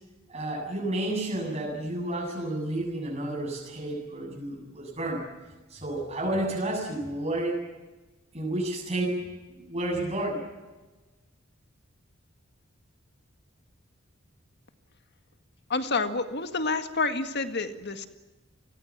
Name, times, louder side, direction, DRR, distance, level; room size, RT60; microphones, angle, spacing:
voice 1, 0.3-5.3 5.7-7.6 8.3-9.2 9.7-10.4, right 1 dB, 30° right, -1 dB, 7.9 m, -31 dB
voice 2, 15.7-18.1, left 3 dB, 55° left, 8 dB, 2.0 m, -28 dB
30.0 x 20.5 x 7.5 m, 1.2 s
head